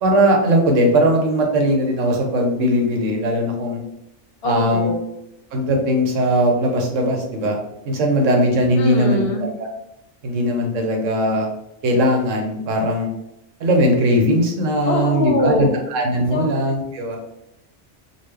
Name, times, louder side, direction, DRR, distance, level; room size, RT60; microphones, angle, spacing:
voice 1, 0.0-3.8 4.4-4.9 5.5-7.6 7.9-9.7 10.2-11.5 11.8-13.1 13.6-17.2, equal, 90° right, 2 dB, 1.2 m, -19 dB
voice 2, 4.4-5.0 8.8-9.5 14.8-15.7 16.3-16.5, left 1 dB, 60° left, 3 dB, 0.8 m, -22 dB
3.9 x 2.3 x 3.2 m, 0.83 s
omnidirectional pair, 1.3 m